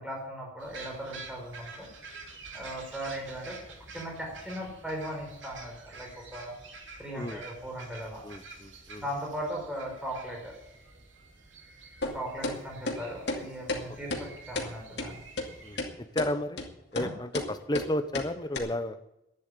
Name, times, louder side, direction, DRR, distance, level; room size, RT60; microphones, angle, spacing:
voice 1, 0.0-1.9 2.5-3.6 3.9-6.5 7.0-8.2 8.9-10.6 12.0-15.2 17.0-17.1, equal, 5° right, -1 dB, 4.6 m, -38 dB
sound 1, 0.6-15.8, right 3 dB, 90° right, 2.7 m, -48 dB
voice 2, 8.2-9.0 15.6-16.6 16.9-19.0, left 1 dB, 20° left, 9 dB, 0.9 m, -33 dB
sound 2, 12.0-12.1 12.4-12.6 12.9-13.0 13.3-13.4 13.7-13.8 14.1-14.2 14.6-14.7 15.0-15.1 15.4-15.5 15.8-15.9 16.2-16.3 16.6-16.7 17.0-17.1 17.3-17.5 17.7-17.9 18.1-18.3 18.5-18.6, left 2 dB, 65° left, 2.5 m, -31 dB
11.5 x 10.0 x 8.4 m, 0.87 s
head